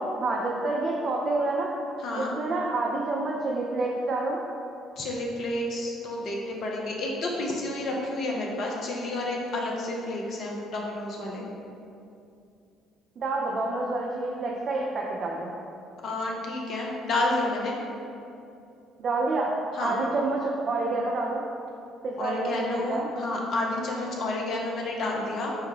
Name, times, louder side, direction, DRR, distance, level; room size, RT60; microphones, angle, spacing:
voice 1, 0.0-1.8 2.2-4.4 13.2-15.5 19.0-19.5 19.8-21.4 22.0-23.1, right 2 dB, 40° right, -2 dB, 0.3 m, -28 dB
voice 2, 2.0-2.3 5.0-11.5 16.0-17.8 19.7-20.0 22.2-25.5, left 2 dB, 50° left, -1 dB, 0.6 m, -30 dB
4.7 x 2.1 x 3.2 m, 2.6 s
figure-of-eight pair, 50°, 0 cm